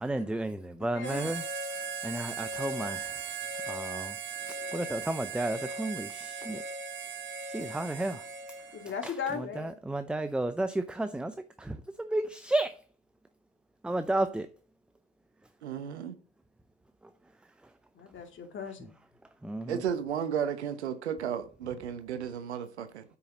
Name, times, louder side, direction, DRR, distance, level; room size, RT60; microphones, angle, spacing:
voice 1, 0.0-3.2 3.7-4.2 4.4-6.6 7.5-8.2 9.0-12.8 13.8-14.5 19.4-19.8, right 1 dB, 5° right, 0.5 m, -33 dB
voice 2, 0.9-1.3 8.7-9.8 18.0-18.9, left 6 dB, 35° left, 2.3 m, -37 dB
Harmonica, 1.0-9.0, right 4 dB, 35° right, 1.4 m, -38 dB
voice 3, 15.6-16.1 19.7-23.0, right 8 dB, 90° right, 1.2 m, -33 dB
8.6 x 6.0 x 4.1 m
hypercardioid pair, 80°, 33 cm